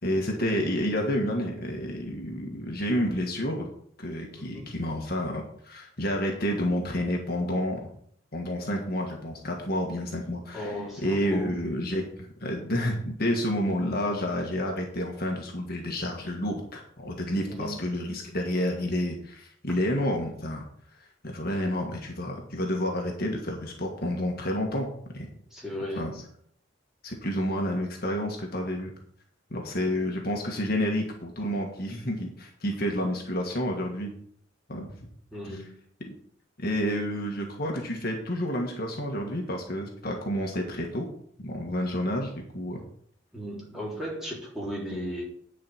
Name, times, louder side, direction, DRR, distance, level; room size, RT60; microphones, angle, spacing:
voice 1, 0.0-3.7 4.0-7.9 8.3-10.7 11.0-20.6 21.0-25.3 25.9-26.1 27.0-28.9 29.5-34.1 34.7-34.9 35.4-35.6 36.0-36.1 36.6-41.1 41.4-42.8, equal, 50° left, 1 dB, 1.7 m, -30 dB
voice 2, 4.3-4.7 10.5-11.6 17.5-17.9 25.5-26.3 35.3-35.7 43.3-45.2, equal, ahead, -5 dB, 3.4 m, -36 dB
9.8 x 5.1 x 7.7 m, 0.64 s
head